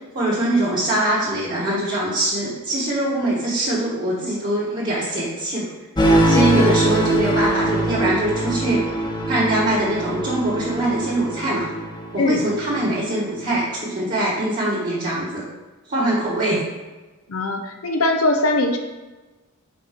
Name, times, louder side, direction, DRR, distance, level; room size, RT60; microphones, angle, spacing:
voice 1, 0.1-5.7 6.2-8.8 9.3-11.7 12.1-15.4 15.9-16.6, right 1 dB, 40° right, -9 dB, 1.5 m, -22 dB
sound 1, 6.0-12.8, right 1 dB, 20° left, 0.9 m, -22 dB
voice 2, 17.3-18.8, left 2 dB, 85° left, 4 dB, 0.7 m, -20 dB
5.1 x 4.3 x 5.2 m, 1.2 s
head